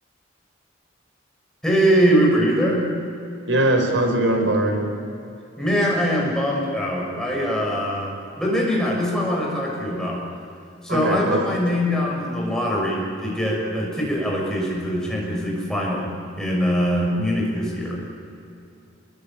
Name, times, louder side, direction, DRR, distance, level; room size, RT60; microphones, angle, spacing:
voice 1, 1.6-2.9 5.6-10.2 10.8-18.2, equal, 5° left, -3 dB, 6.4 m, -22 dB
voice 2, 3.5-4.9 10.9-11.4, right 1 dB, 70° right, 3 dB, 4.8 m, -21 dB
29.0 x 22.0 x 8.8 m, 2.7 s
head